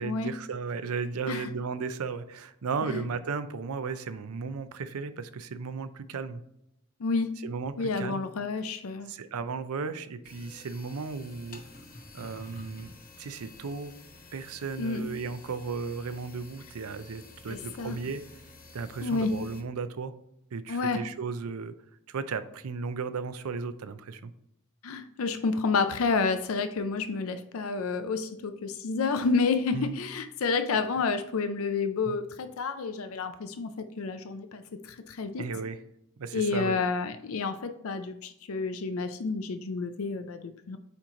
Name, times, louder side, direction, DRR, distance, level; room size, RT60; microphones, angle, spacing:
voice 1, 0.0-6.4 7.4-8.3 9.1-11.6 12.1-13.9 14.3-18.2 18.7-20.1 20.5-21.7 22.1-24.3 29.7-30.0 32.1-32.2 35.4-35.8 36.2-36.8, right 5 dB, 80° right, 12 dB, 0.5 m, -35 dB
voice 2, 7.0-7.3 7.8-9.1 14.8-15.0 17.5-18.0 19.0-19.3 20.7-21.0 24.8-35.4 36.3-40.8, left 4 dB, 70° left, 9 dB, 0.5 m, -30 dB
sound 1, 10.2-19.6, left 2 dB, 40° left, 0.9 m, -50 dB
8.6 x 3.0 x 3.8 m, 0.80 s
head